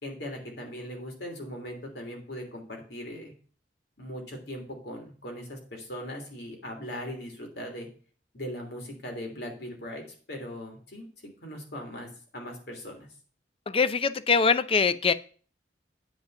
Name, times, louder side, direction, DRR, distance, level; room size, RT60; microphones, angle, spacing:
voice 1, 0.0-3.3 4.0-7.9 8.3-11.1 11.4-13.1, equal, 65° left, 3.1 m, -39 dB
voice 2, 13.7-15.1, left 5 dB, 30° left, 0.5 m, -23 dB
9.1 x 5.4 x 6.7 m
head